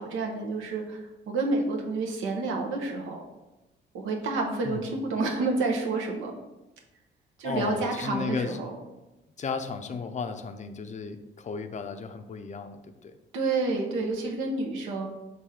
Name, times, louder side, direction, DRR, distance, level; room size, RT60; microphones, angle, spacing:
voice 1, 0.0-3.2 3.9-6.3 7.4-8.8 13.3-15.1, right 3 dB, 90° right, 1 dB, 0.8 m, -29 dB
voice 2, 7.4-8.6 9.4-13.2, left 5 dB, 35° left, 8 dB, 0.4 m, -34 dB
4.2 x 2.7 x 4.7 m, 1.0 s
cardioid pair, 90°, 20 cm